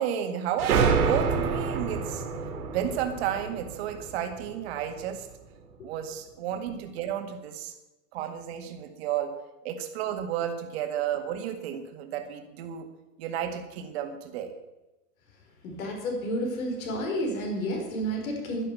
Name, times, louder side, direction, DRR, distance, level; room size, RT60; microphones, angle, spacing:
voice 1, 0.0-2.2 2.6-5.3 5.8-7.7 8.1-9.3 9.6-12.9 13.2-14.5, right 9 dB, 40° right, 6 dB, 1.9 m, -32 dB
sound 1, 0.6-5.0, right 5 dB, 65° right, 2.4 m, -28 dB
voice 2, 15.6-18.7, equal, 55° left, 2 dB, 5.0 m, -30 dB
12.0 x 11.0 x 6.9 m, 1.0 s
hypercardioid pair, 160°, 48 cm